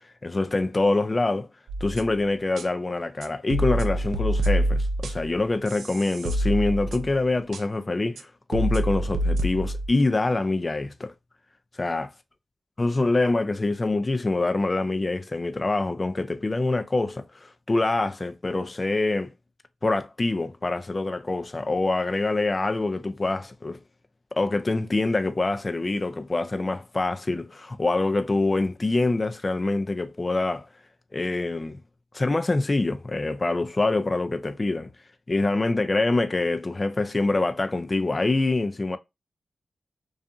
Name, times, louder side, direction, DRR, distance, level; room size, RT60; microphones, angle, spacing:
voice 1, 0.2-1.5 1.8-11.1 11.8-12.1 12.8-19.3 19.8-23.8 24.3-30.7 31.1-31.8 32.1-34.9 35.3-39.0, left 2 dB, 35° left, 0.3 m, -25 dB
sound 1, 1.7-2.2 2.6-2.7 3.2-5.4 5.7-7.2 7.5-7.6 8.2-8.3 8.5-9.9, right 1 dB, 80° right, 0.4 m, -26 dB
2.6 x 2.4 x 2.3 m
cardioid pair, 45°, 0 cm